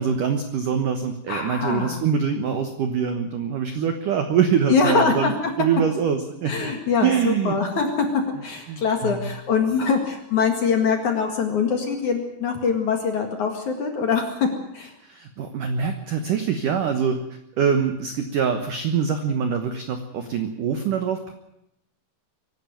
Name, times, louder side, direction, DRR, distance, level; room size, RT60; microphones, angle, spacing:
voice 1, 0.0-6.7 7.0-7.5 8.7-9.2 15.0-17.2 17.6-21.3, right 7 dB, 75° right, 7 dB, 1.9 m, -24 dB
voice 2, 1.3-2.0 4.7-5.5 6.5-14.2 14.7-14.9, left 5 dB, 50° left, 3 dB, 2.6 m, -23 dB
24.0 x 12.5 x 9.1 m, 0.81 s
omnidirectional pair, 5.6 m